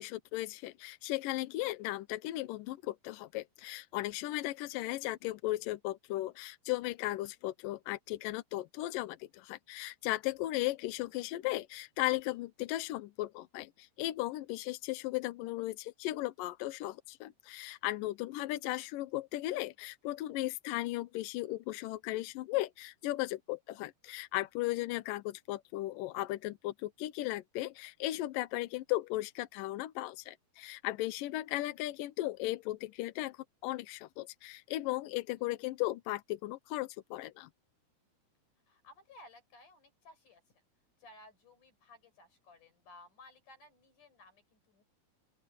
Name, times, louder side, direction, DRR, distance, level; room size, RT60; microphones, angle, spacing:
voice 1, 0.0-37.5, left 17 dB, 75° left, 2.1 m, -36 dB
voice 2, 38.7-40.6 41.0-44.8, left 2 dB, 50° left, 7.5 m, -58 dB
open air
omnidirectional pair, 4.5 m